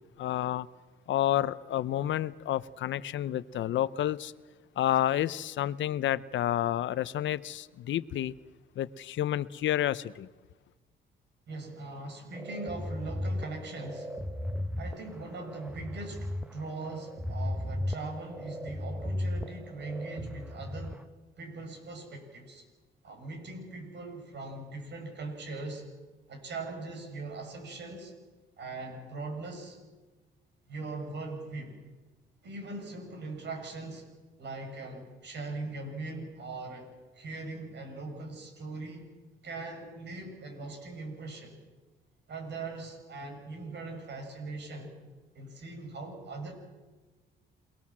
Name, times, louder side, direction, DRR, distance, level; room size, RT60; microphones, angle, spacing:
voice 1, 0.2-0.7 1.1-4.3 4.8-8.3 8.8-10.3, left 12 dB, 70° left, 0.8 m, -30 dB
voice 2, 11.5-14.3 14.8-21.0 21.4-22.6 23.0-25.8 26.3-28.1 28.6-29.8 30.7-31.7 32.4-34.1 34.4-36.9 37.1-39.1 39.4-41.5 42.3-44.9 45.3-46.5, right 3 dB, 60° right, 7.4 m, -40 dB
sound 1, 12.3-21.0, left 1 dB, 5° right, 1.1 m, -36 dB
28.5 x 20.5 x 7.5 m
cardioid pair, 90°, 20 cm